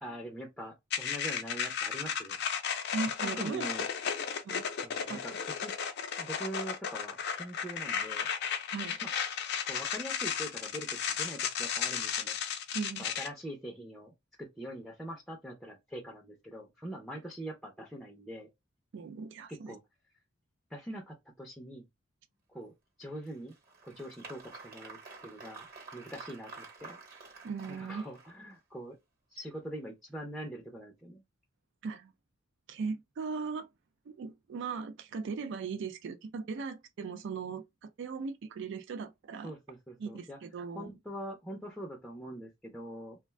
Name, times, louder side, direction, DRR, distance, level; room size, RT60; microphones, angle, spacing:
voice 1, 0.0-2.4 3.2-3.8 4.8-5.3 5.6-5.7 6.2-8.3 9.0-9.1 9.7-12.4 13.0-14.1 14.4-18.5 19.5-19.8 20.7-21.9 22.5-22.7 23.0-23.5 23.8-25.7 25.9-27.0 27.7-29.0 29.3-31.2 39.4-40.4 40.7-43.2, right 1 dB, ahead, 0.5 m, -43 dB
sound 1, 0.9-13.3, left 7 dB, 55° left, 0.5 m, -34 dB
voice 2, 2.9-3.7 4.4-4.7 5.1-5.2 8.7-9.0 12.7-13.1 18.9-19.7 27.4-28.0 31.8-32.1 32.7-33.7 34.1-39.5 40.0-40.9, right 5 dB, 65° right, 0.4 m, -38 dB
Applause, 23.2-28.6, right 4 dB, 45° right, 1.1 m, -50 dB
2.4 x 2.2 x 3.2 m
head